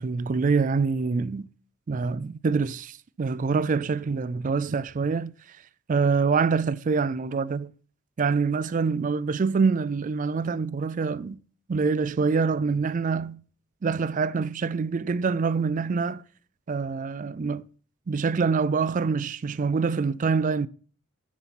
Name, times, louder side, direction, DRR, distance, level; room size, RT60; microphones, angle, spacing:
voice 1, 0.0-1.5 1.9-5.3 5.9-7.7 8.2-11.4 11.7-13.4 13.8-16.2 16.7-17.6 18.1-20.7, right 5 dB, 40° right, 0.4 m, -25 dB
11.0 x 8.1 x 4.2 m
head